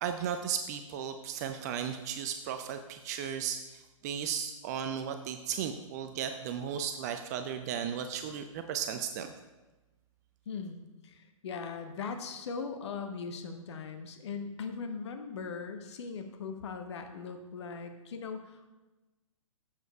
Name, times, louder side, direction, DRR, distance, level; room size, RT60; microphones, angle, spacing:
voice 1, 0.0-9.3, right 8 dB, 30° right, 7 dB, 0.4 m, -35 dB
voice 2, 10.5-18.7, left 5 dB, 55° left, 6 dB, 0.9 m, -40 dB
14.5 x 7.2 x 2.3 m, 1.1 s
figure-of-eight pair, 125°, 17 cm